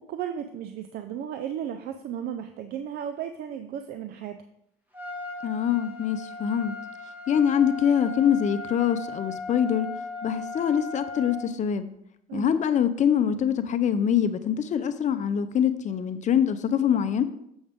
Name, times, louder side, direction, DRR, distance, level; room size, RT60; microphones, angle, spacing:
voice 1, 0.1-4.4 12.3-12.6, right 9 dB, 70° right, 8 dB, 0.5 m, -34 dB
Trumpet, 4.9-11.5, left 2 dB, 10° right, 1.8 m, -37 dB
voice 2, 5.4-6.7 7.3-9.9 10.2-11.9 12.3-17.2, left 8 dB, 45° left, 11 dB, 0.6 m, -24 dB
7.1 x 6.3 x 3.6 m, 0.76 s
cardioid pair, 110°, 17 cm